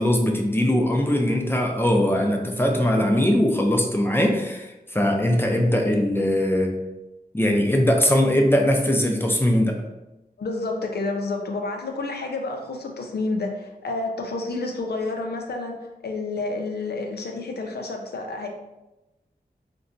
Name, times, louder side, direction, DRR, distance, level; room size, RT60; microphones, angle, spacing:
voice 1, 0.0-6.8 7.3-9.8, left 1 dB, 15° left, 2 dB, 0.4 m, -21 dB
voice 2, 10.4-15.8 16.0-18.5, left 3 dB, 80° left, 3 dB, 0.5 m, -29 dB
3.8 x 2.2 x 2.5 m, 0.99 s
wide cardioid pair, 85°, 16 cm